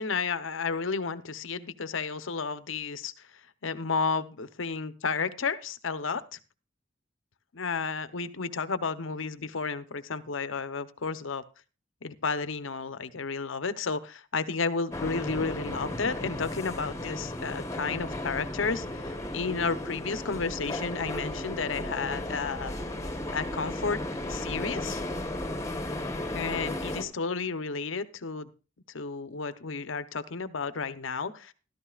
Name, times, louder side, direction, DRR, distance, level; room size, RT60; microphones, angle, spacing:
voice 1, 0.0-3.1 3.6-6.4 7.5-11.4 12.0-22.7 23.3-24.0 24.3-25.0 26.3-28.5 28.9-31.5, left 4 dB, 85° left, 12 dB, 0.8 m, -32 dB
sound 1, 14.9-27.0, left 1 dB, 15° left, 1.1 m, -35 dB
14.5 x 13.0 x 2.4 m, 0.32 s
head